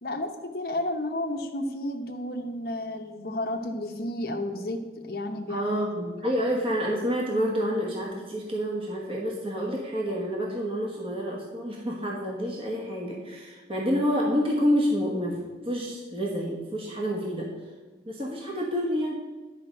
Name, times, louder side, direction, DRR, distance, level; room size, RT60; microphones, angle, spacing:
voice 1, 0.0-5.7, left 1 dB, 55° left, 2 dB, 0.9 m, -32 dB
voice 2, 5.5-15.4 15.6-17.5 18.0-19.2, equal, 30° right, -2 dB, 1.4 m, -28 dB
10.5 x 5.1 x 7.6 m, 1.3 s
head